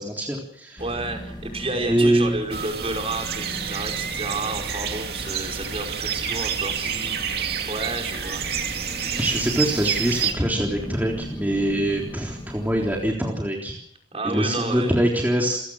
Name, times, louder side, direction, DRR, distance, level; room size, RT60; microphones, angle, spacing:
voice 1, 0.0-0.8 1.8-2.4 6.8-7.1 7.6-7.7 9.2-13.8 14.2-15.6, right 1 dB, 10° right, -1 dB, 3.7 m, -24 dB
sound 1, 0.8-13.1, equal, 25° left, 3.5 m, -38 dB
voice 2, 0.8-7.3 7.7-8.5 14.1-14.9, right 2 dB, 35° right, 3 dB, 5.3 m, -31 dB
sound 2, 2.5-10.3, right 7 dB, 60° right, 2.6 m, -29 dB
28.5 x 18.0 x 6.4 m, 0.75 s
head